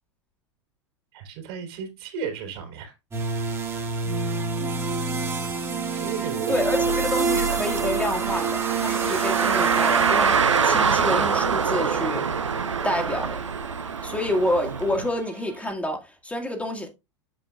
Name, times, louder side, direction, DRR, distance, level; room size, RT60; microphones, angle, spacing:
voice 1, 1.1-2.9 5.9-6.6, right 6 dB, 50° right, 3.4 m, -34 dB
sound 1, 3.1-15.7, right 4 dB, 15° right, 2.0 m, -29 dB
voice 2, 6.5-12.3 12.8-13.4 14.0-16.9, left 1 dB, 10° left, 1.8 m, -28 dB
Car, 6.5-15.1, right 6 dB, 80° right, 0.7 m, -25 dB
8.4 x 7.6 x 2.3 m
figure-of-eight pair, 90°, 15 cm